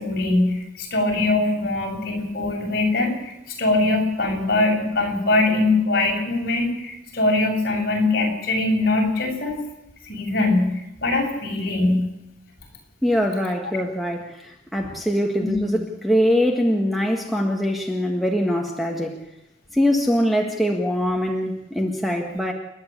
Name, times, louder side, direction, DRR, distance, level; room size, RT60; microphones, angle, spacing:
voice 1, 0.0-9.6 10.1-12.1 15.4-15.6, left 2 dB, 50° left, 0 dB, 6.5 m, -22 dB
voice 2, 13.0-19.2 19.7-22.5, equal, ahead, 1 dB, 1.7 m, -23 dB
29.0 x 11.0 x 8.7 m, 0.86 s
head